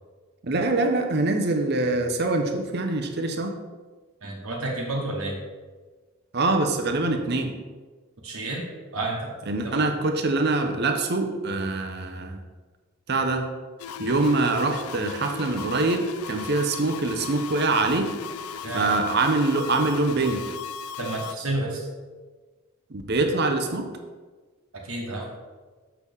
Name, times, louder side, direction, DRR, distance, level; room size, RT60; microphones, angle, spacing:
voice 1, 0.4-3.5 6.3-7.5 9.5-12.4 13.1-13.5 14.0-18.1 18.7-20.4 22.9-23.9, right 2 dB, 50° right, 5 dB, 0.8 m, -24 dB
voice 2, 4.2-5.4 8.2-8.6 8.9-9.4 9.6-9.8 18.6-19.0 21.0-21.8 23.3-23.4 24.8-25.3, right 2 dB, 75° right, -2 dB, 1.4 m, -30 dB
sound 1, 13.8-21.3, left 6 dB, 80° left, 0.4 m, -37 dB
7.1 x 6.4 x 3.5 m, 1.3 s
head